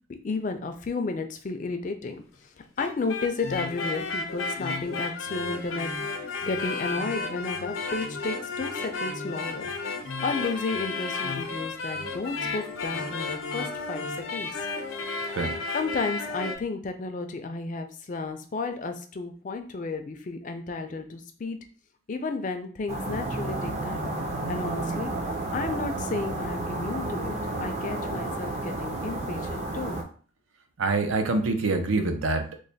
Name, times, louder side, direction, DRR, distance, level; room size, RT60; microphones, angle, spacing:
voice 1, 0.1-2.2 2.8-5.9 6.2-9.7 10.2-14.0 14.3-14.5 15.7-21.6 22.1-24.1 24.5-25.1 25.5-30.0, left 3 dB, 40° left, 6 dB, 0.4 m, -32 dB
sound 1, 2.6-16.6, left 3 dB, 85° left, 0.6 m, -33 dB
sound 2, 22.9-30.0, right 2 dB, 35° right, 0.5 m, -31 dB
voice 2, 30.8-32.6, right 3 dB, 80° right, 7 dB, 0.5 m, -25 dB
3.2 x 2.2 x 3.9 m, 0.42 s
head